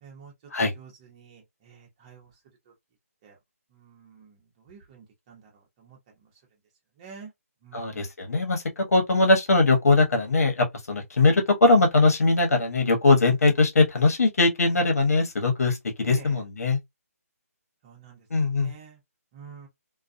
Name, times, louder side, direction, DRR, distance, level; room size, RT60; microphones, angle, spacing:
voice 1, 0.0-0.3 0.7-2.3 2.7-2.8 3.2-3.4 3.7-6.3 7.0-7.3 7.6-8.1 16.0-16.4 17.8-19.0 19.3-19.7, right 6 dB, 25° right, 0.9 m, -48 dB
voice 2, 7.7-16.8 18.3-18.7, left 3 dB, 70° left, 1.1 m, -21 dB
2.3 x 2.3 x 2.6 m
hypercardioid pair, 160°, 8 cm